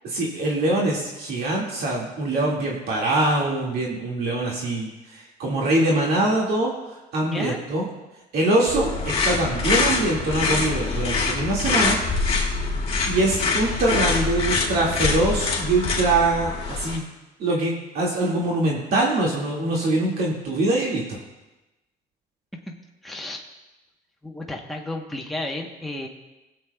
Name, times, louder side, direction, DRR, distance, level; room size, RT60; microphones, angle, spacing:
voice 1, 0.1-6.7 7.1-7.8 8.3-12.0 13.1-17.0 17.4-21.2, right 2 dB, 65° right, -3 dB, 2.0 m, -23 dB
voice 2, 7.2-7.6 23.0-23.4 24.2-26.1, left 2 dB, ahead, 0 dB, 1.0 m, -32 dB
sound 1, 8.7-17.0, left 4 dB, 35° left, 2.3 m, -24 dB
20.0 x 7.6 x 2.2 m, 1.0 s
cardioid pair, 110°, 17 cm